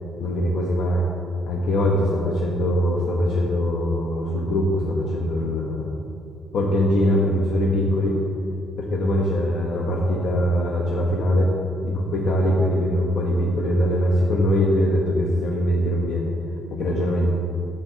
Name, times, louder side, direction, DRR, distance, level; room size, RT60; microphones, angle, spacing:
voice 1, 0.2-1.0 1.5-5.9 6.5-8.2 8.8-11.5 11.8-16.3 16.7-17.3, equal, 75° left, -2 dB, 0.9 m, -22 dB
8.4 x 6.5 x 4.5 m, 2.6 s
cardioid pair, 90°, 0 cm